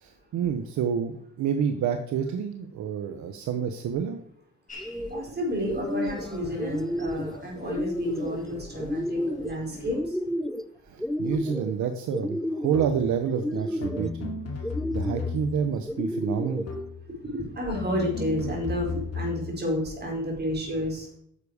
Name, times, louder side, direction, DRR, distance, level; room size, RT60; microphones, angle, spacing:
voice 1, 0.0-4.2 10.8-14.3 14.9-16.7, right 7 dB, 75° right, 7 dB, 0.9 m, -28 dB
sound 1, 4.7-10.0, left 1 dB, 25° left, 4.5 m, -45 dB
sound 2, 4.7-5.2 5.6-6.3 6.6-7.3 7.7-8.4 8.8-9.5 9.9-10.7 11.0-11.7 12.1-12.9 13.3-14.1 14.6-15.3 15.9-16.7, equal, ahead, 0.4 m, -31 dB
voice 2, 5.1-10.2 16.4-16.5 17.3-21.1, equal, 35° right, -1 dB, 4.5 m, -31 dB
sound 3, 12.7-13.2 13.8-15.8 16.7-17.1 17.7-19.5, left 4 dB, 55° left, 2.4 m, -34 dB
9.7 x 6.8 x 4.9 m, 0.68 s
cardioid pair, 90°, 30 cm